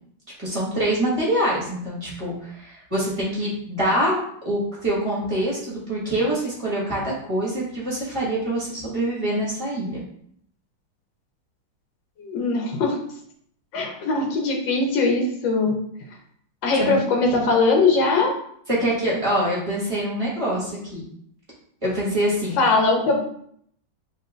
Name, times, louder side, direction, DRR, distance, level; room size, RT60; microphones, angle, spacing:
voice 1, 0.4-10.0 16.8-17.0 18.7-21.0 21.8-22.6, right 1 dB, 20° right, -6 dB, 1.6 m, -25 dB
voice 2, 12.2-13.0 13.7-15.8 16.6-18.3 22.6-23.2, left 3 dB, 85° left, 1 dB, 1.7 m, -20 dB
5.6 x 3.6 x 2.5 m, 0.66 s
omnidirectional pair, 2.0 m